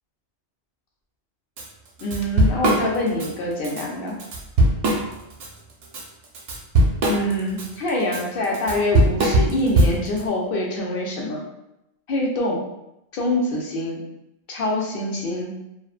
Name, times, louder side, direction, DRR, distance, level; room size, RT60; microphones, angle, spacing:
Drum kit / Drum, 1.6-1.7 2.0-3.3 3.6-3.8 4.2-5.5 5.8-10.2, right 1 dB, 65° right, 0.8 m, -20 dB
voice 1, 2.0-4.2 7.1-11.4 12.1-12.6 13.1-14.0 14.5-15.6, left 1 dB, 60° left, -2 dB, 0.7 m, -25 dB
2.5 x 2.1 x 2.3 m, 0.86 s
omnidirectional pair, 1.2 m